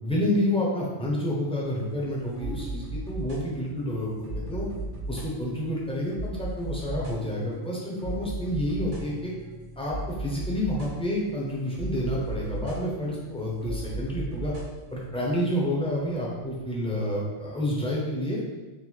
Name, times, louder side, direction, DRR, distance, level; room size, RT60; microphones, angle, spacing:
voice 1, 0.0-4.7 5.1-9.3 9.8-14.5 14.9-18.4, left 1 dB, 5° left, -4 dB, 0.7 m, -29 dB
sound 1, 1.6-17.9, right 1 dB, 90° right, 1.4 m, -38 dB
3.9 x 3.2 x 3.1 m, 1.2 s
omnidirectional pair, 1.2 m